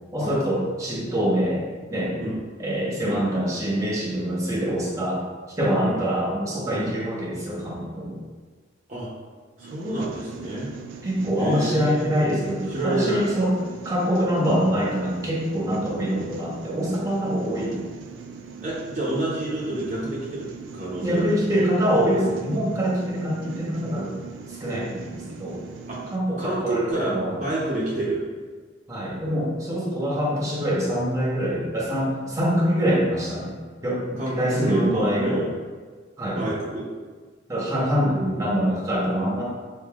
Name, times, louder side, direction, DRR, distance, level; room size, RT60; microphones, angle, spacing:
voice 1, 0.1-1.6 1.9-2.1 2.6-5.2 5.6-8.2 11.0-13.5 13.8-17.8 21.0-24.1 24.5-25.6 26.1-27.4 28.9-33.5 33.8-35.4 36.2-36.4 37.5-39.4, equal, 20° right, -5 dB, 1.0 m, -24 dB
voice 2, 9.6-10.8 11.4-12.3 12.7-13.3 18.6-20.5 20.7-21.4 25.9-26.0 26.4-28.2 34.2-35.5 36.4-36.9, right 2 dB, 40° right, -7 dB, 0.7 m, -28 dB
sound 1, 9.6-26.2, right 5 dB, 90° right, 0.4 m, -41 dB
6.8 x 2.6 x 2.3 m, 1.5 s
head